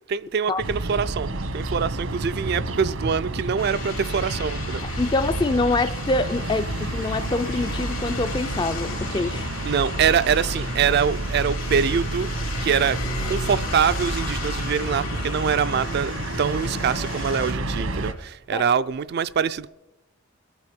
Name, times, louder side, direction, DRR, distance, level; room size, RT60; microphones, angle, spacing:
voice 1, 0.1-4.8 9.6-12.3 12.6-13.0 13.2-19.7, right 7 dB, 50° right, 0.3 m, -24 dB
sound 1, 0.6-18.1, right 2 dB, 80° right, 1.2 m, -30 dB
sound 2, 3.6-17.5, left 6 dB, 75° left, 2.0 m, -37 dB
voice 2, 5.0-9.5 18.5-18.7, left 2 dB, 20° left, 0.3 m, -25 dB
sound 3, 11.9-16.9, left 1 dB, 50° left, 0.7 m, -39 dB
22.0 x 8.1 x 5.1 m
head